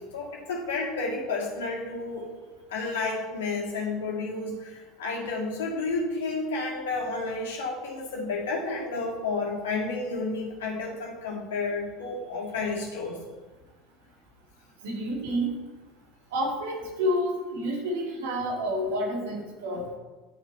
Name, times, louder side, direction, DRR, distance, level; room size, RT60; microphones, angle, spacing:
voice 1, 0.1-2.3 2.7-13.2 19.7-19.8, left 3 dB, 65° left, -1 dB, 2.0 m, -31 dB
voice 2, 14.8-15.5 16.3-19.9, equal, 65° right, 0 dB, 2.2 m, -29 dB
11.0 x 5.8 x 4.2 m, 1.2 s
figure-of-eight pair, 70°, 0 cm